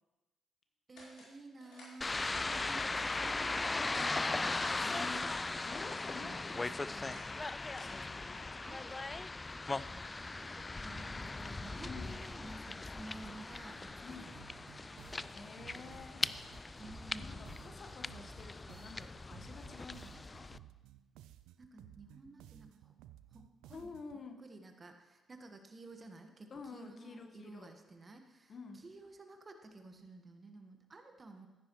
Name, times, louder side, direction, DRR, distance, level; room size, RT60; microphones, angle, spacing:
sound 1, 0.9-1.3 1.6-2.2 2.6-3.5 3.9-4.1 4.4-5.4 5.8-6.1 6.4-8.3, left 2 dB, 70° left, 4.0 m, -56 dB
voice 1, 0.9-4.7 6.2-6.8 8.6-9.0 9.9-10.1 10.3-14.5 15.8-16.3 16.8-17.6 21.6-22.9 23.3-23.9 24.4-31.5, right 2 dB, 40° right, 5 dB, 1.4 m, -53 dB
sound 2, 2.0-20.6, left 3 dB, 25° left, 0.3 m, -39 dB
voice 2, 4.8-5.3 5.6-7.5 7.8-8.6 11.9-12.2 14.0-14.3 15.3-16.3 17.2-20.5 23.7-24.4 26.5-27.7 28.5-28.8, left 4 dB, 50° left, 6 dB, 1.2 m, -50 dB
sound 3, 14.4-24.2, right 13 dB, 80° right, 0.3 m, -57 dB
14.0 x 9.6 x 3.1 m, 1.1 s
hypercardioid pair, 45°, 0 cm